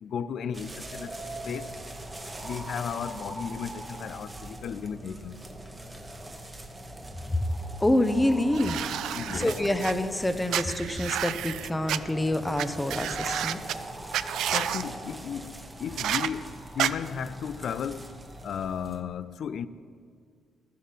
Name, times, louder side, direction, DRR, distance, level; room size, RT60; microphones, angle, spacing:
voice 1, 0.0-1.1 1.5-1.7 2.4-5.4 9.1-9.7 14.5-19.7, left 7 dB, 65° left, 0.4 m, -35 dB
sound 1, 0.5-19.0, right 1 dB, 15° right, 1.0 m, -41 dB
voice 2, 7.8-8.8 9.3-13.6, left 1 dB, 10° left, 0.7 m, -26 dB
sound 2, 8.5-9.9 10.5-12.0 12.6-12.7 12.9-13.7 14.1-14.8 16.0-16.3 16.8-16.9, right 11 dB, 80° right, 0.3 m, -30 dB
12.5 x 7.5 x 5.5 m
cardioid pair, 90°, 0 cm